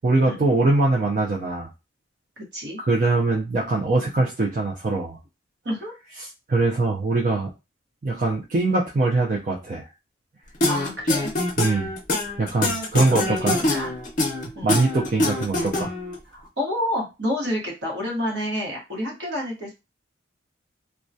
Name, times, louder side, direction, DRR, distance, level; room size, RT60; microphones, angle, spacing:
voice 1, 0.0-1.7 2.8-5.2 6.5-7.5 8.0-9.9 11.6-11.9 12.4-13.6 14.6-15.9, right 2 dB, 40° right, -2 dB, 0.4 m, -22 dB
voice 2, 2.4-2.8 5.6-5.9 10.7-11.3 13.1-13.9 14.5-14.8 16.3-19.7, left 1 dB, 55° right, -1 dB, 1.0 m, -29 dB
sound 1, 10.6-16.1, left 2 dB, 40° left, 0.5 m, -24 dB
2.2 x 2.2 x 2.6 m, 0.26 s
head